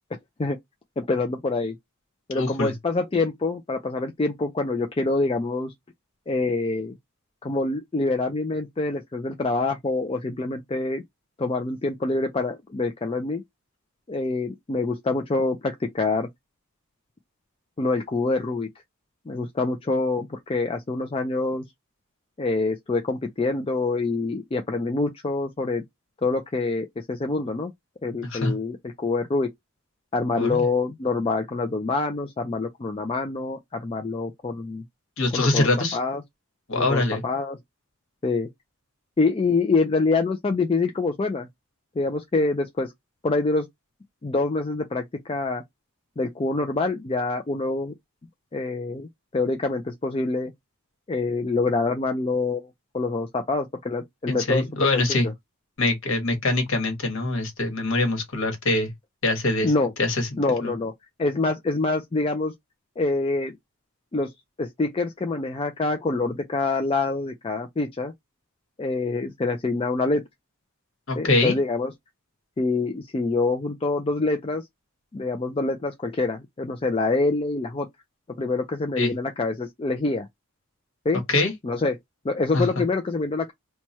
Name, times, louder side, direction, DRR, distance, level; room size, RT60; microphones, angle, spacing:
voice 1, 1.0-1.8 2.3-5.7 6.3-6.9 7.4-11.0 11.4-13.4 14.1-16.3 17.8-18.7 19.3-21.6 22.4-25.8 26.2-27.7 28.0-29.5 30.1-34.8 35.3-36.2 36.8-37.6 38.2-38.5 39.2-41.5 42.0-42.9 43.2-43.7 44.2-45.6 46.2-47.9 48.5-50.5 51.1-52.7 52.9-55.2 59.6-59.9 60.4-60.9 61.2-62.5 63.0-63.6 64.1-64.3 64.6-68.1 68.8-70.2 71.2-71.9 72.6-74.6 75.1-77.9 78.4-80.3 81.1-81.2 81.6-81.9 82.2-83.5, left 3 dB, 25° left, 0.3 m, -26 dB
voice 2, 2.3-2.7 28.2-28.5 30.4-30.7 35.2-36.0 36.7-37.2 54.3-55.3 55.8-58.9 59.2-59.7 60.0-60.7 71.1-71.6 79.0-79.1 81.3-81.5 82.5-82.8, left 2 dB, 60° left, 1.2 m, -24 dB
3.0 x 2.2 x 4.1 m
head